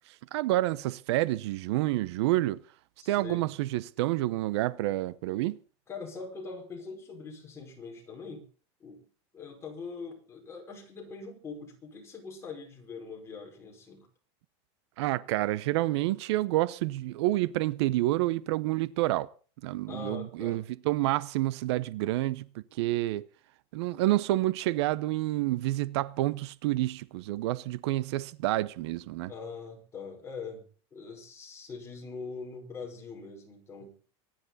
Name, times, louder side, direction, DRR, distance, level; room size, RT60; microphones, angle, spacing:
voice 1, 0.1-2.6 3.1-5.6 15.0-19.3 19.6-23.2 23.7-29.3, right 16 dB, 75° right, 0.7 m, -29 dB
voice 2, 3.0-3.5 5.9-8.4 8.8-9.1 9.3-14.1 19.9-20.6 29.3-30.7 30.9-34.0, left 4 dB, 20° left, 5.2 m, -42 dB
24.5 x 10.5 x 4.1 m
supercardioid pair, 150°, 14 cm